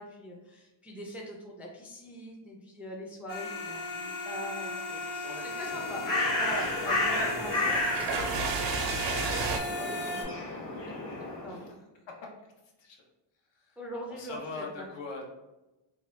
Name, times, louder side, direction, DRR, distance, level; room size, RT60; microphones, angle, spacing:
voice 1, 0.0-6.0 6.4-7.8 8.1-8.9 9.8-10.4 11.4-11.7 13.8-14.9, equal, 5° right, -2 dB, 0.4 m, -42 dB
sound 1, 3.3-10.2, left 1 dB, 45° left, 1.2 m, -37 dB
voice 2, 5.2-5.7 7.1-7.3 11.5-11.6 12.1-12.2 12.8-13.0 14.1-15.2, left 3 dB, 60° left, 0 dB, 0.9 m, -40 dB
Bird, 5.5-11.6, left 2 dB, 90° left, 1.1 m, -32 dB
sound 2, 6.5-9.6, right 5 dB, 60° right, 0.5 m, -33 dB
2.8 x 2.3 x 3.1 m, 1.0 s
cardioid pair, 100°, 48 cm